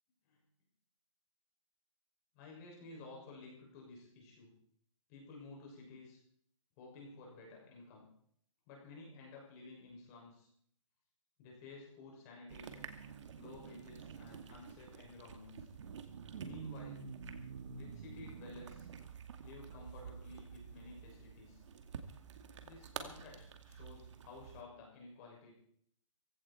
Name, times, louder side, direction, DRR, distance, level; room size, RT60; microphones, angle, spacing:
voice 1, 2.3-4.5 5.1-6.2 6.8-8.1 8.7-10.5 11.4-12.9 13.4-15.7 16.4-17.1 17.7-18.9 19.4-21.6 22.6-25.5, left 3 dB, 30° left, -2 dB, 6.2 m, -53 dB
sound 1, 12.5-24.6, right 6 dB, 60° right, 2.2 m, -49 dB
18.0 x 16.5 x 4.4 m, 0.66 s
hypercardioid pair, 155°, 17 cm